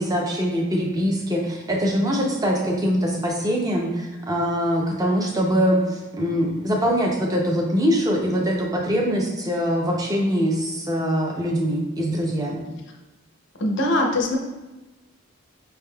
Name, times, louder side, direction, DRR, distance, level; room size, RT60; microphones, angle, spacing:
voice 1, 0.0-12.6, equal, 15° right, 0 dB, 0.5 m, -23 dB
voice 2, 13.6-14.4, left 1 dB, 55° left, 1 dB, 0.6 m, -21 dB
5.3 x 3.5 x 2.2 m, 1.1 s
head